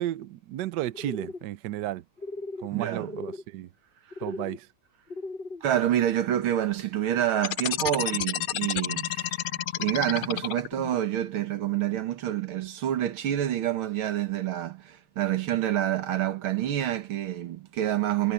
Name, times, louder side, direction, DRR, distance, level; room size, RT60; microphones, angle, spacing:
voice 1, 0.0-2.0 2.6-3.7 4.2-4.7, right 13 dB, 70° right, 1.2 m, -33 dB
sound 1, 0.9-1.4 2.2-2.7 2.9-3.4 4.1-4.6 5.1-5.6, left 2 dB, 30° left, 3.8 m, -37 dB
voice 2, 2.7-3.2 5.6-9.4 9.8-18.3, right 11 dB, 90° right, 2.1 m, -27 dB
sound 2, 7.4-10.9, left 12 dB, 70° left, 0.8 m, -30 dB
omnidirectional pair, 2.2 m